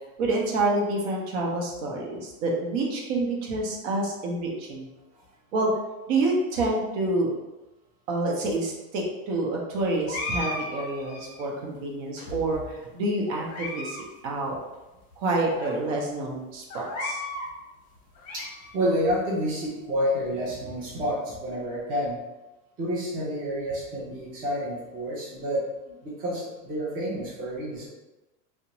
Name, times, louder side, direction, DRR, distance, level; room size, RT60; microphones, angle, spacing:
voice 1, 0.2-4.9 5.5-5.7 6.1-7.3 8.1-14.6 15.2-17.2, right 2 dB, 60° right, -1 dB, 0.8 m, -28 dB
sound 1, 10.1-11.5 12.2-12.8 13.3-14.0 14.3-14.4 15.1-15.2 15.6-15.7 16.7-17.5 18.0-18.9, left 2 dB, 35° left, 0.7 m, -35 dB
voice 2, 18.7-22.2 22.8-25.6 26.0-27.9, equal, 20° right, -6 dB, 0.5 m, -29 dB
2.4 x 2.1 x 2.9 m, 1.0 s
supercardioid pair, 145°, 44 cm